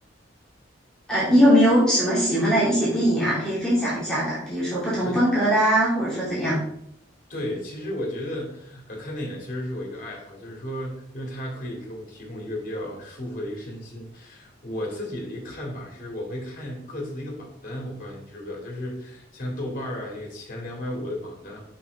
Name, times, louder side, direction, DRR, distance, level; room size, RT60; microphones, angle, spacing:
voice 1, 1.1-6.6, equal, 5° left, -10 dB, 2.7 m, -21 dB
voice 2, 7.3-21.6, left 1 dB, 45° left, -1 dB, 2.6 m, -34 dB
6.1 x 5.9 x 4.0 m, 0.72 s
head